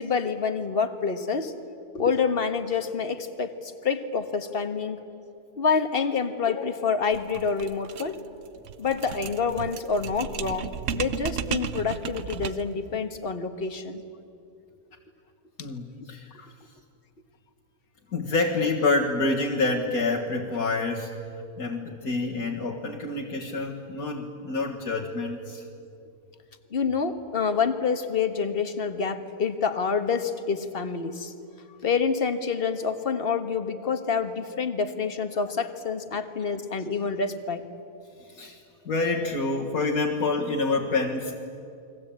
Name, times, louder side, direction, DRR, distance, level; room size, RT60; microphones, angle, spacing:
voice 1, 0.0-1.5 1.9-5.0 5.6-8.2 8.8-14.0 26.7-31.3 31.8-37.6, left 5 dB, 40° left, 8 dB, 1.6 m, -27 dB
sound 1, 7.1-12.8, right 7 dB, 60° right, 1.1 m, -34 dB
voice 2, 15.6-16.5 18.1-21.1 21.6-25.6 38.3-38.6 38.9-41.3, left 3 dB, 80° left, -3 dB, 2.2 m, -27 dB
30.0 x 22.5 x 8.8 m, 2.6 s
omnidirectional pair, 1.6 m